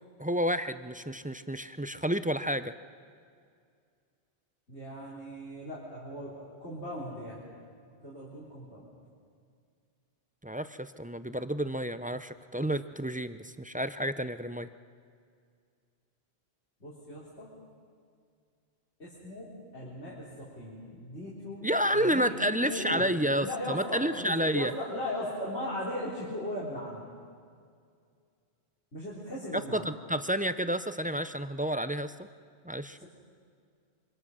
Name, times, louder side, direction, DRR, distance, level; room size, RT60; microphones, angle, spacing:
voice 1, 0.2-2.7 10.4-14.7 21.6-24.7 29.5-32.3 32.6-33.0, equal, 15° right, 11 dB, 0.3 m, -30 dB
voice 2, 4.7-7.4 8.0-8.8 16.8-17.5 19.0-23.1 23.4-27.0 28.9-29.9 33.0-33.1, left 1 dB, 80° left, -7 dB, 3.9 m, -38 dB
25.0 x 24.5 x 6.3 m, 2.2 s
omnidirectional pair, 1.1 m